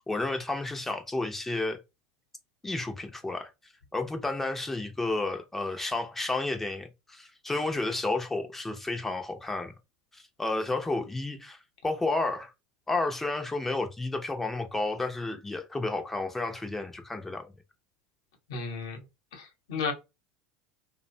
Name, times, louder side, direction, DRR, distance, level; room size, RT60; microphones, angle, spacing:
voice 1, 0.0-1.8 2.6-3.5 3.9-9.7 10.1-12.5 12.9-17.5, left 2 dB, 10° left, 0.5 m, -31 dB
voice 2, 18.5-19.0 19.3-19.9, left 5 dB, 75° left, 0.8 m, -33 dB
2.5 x 2.1 x 2.6 m
hypercardioid pair, 85°, 2 cm